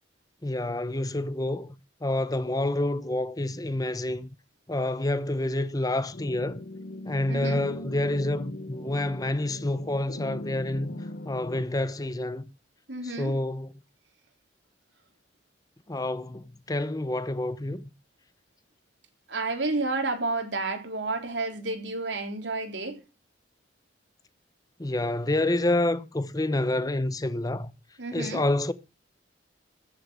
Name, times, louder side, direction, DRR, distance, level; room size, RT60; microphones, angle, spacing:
voice 1, 0.4-1.8 2.0-4.3 4.7-6.6 7.1-10.9 11.3-12.4 13.0-13.7 15.9-17.8 24.8-27.7 28.1-28.7, left 1 dB, 20° left, 0.8 m, -28 dB
sound 1, 6.1-11.7, left 1 dB, 55° left, 0.9 m, -39 dB
voice 2, 7.3-7.6 12.9-13.3 19.3-23.0 28.0-28.4, right 3 dB, 80° right, 3.6 m, -30 dB
14.5 x 7.2 x 7.5 m
head